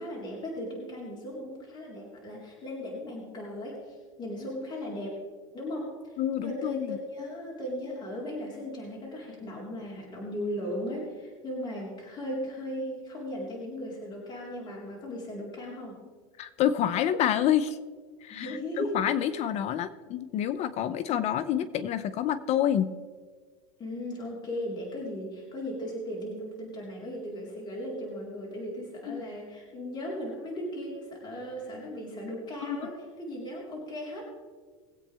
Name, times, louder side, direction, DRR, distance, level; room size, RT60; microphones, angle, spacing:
voice 1, 0.0-5.2 5.5-16.0 18.3-19.0 19.3-19.4 21.1-21.4 23.8-34.2, left 1 dB, 25° left, -3 dB, 4.0 m, -37 dB
voice 2, 6.2-7.0 16.4-17.8 18.2-22.9 29.1-29.2 32.6-32.9, left 10 dB, 45° left, 14 dB, 0.7 m, -28 dB
21.5 x 8.5 x 3.4 m, 1.5 s
supercardioid pair, 115°, 16 cm